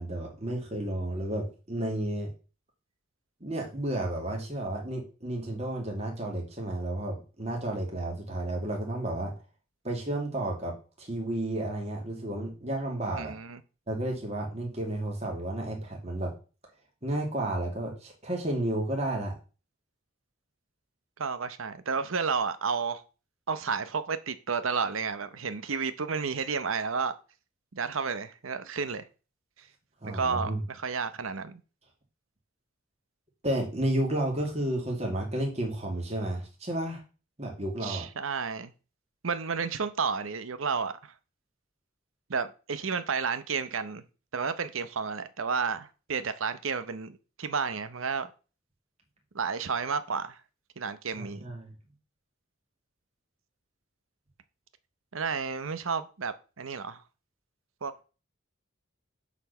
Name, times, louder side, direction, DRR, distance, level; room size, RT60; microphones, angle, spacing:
voice 1, 0.0-2.3 3.4-9.3 9.8-13.3 13.9-16.3 17.0-19.3 30.0-30.6 33.4-37.0 37.4-38.0 51.1-51.7, right 1 dB, 30° right, 2.3 m, -32 dB
voice 2, 13.1-13.6 21.2-23.0 23.5-27.1 27.7-29.0 30.0-31.6 37.8-38.7 39.2-41.1 42.3-44.0 44.3-48.3 49.3-50.4 50.8-51.5 55.1-57.0 57.8-57.9, right 5 dB, 85° right, 0.8 m, -31 dB
7.3 x 4.3 x 6.7 m
head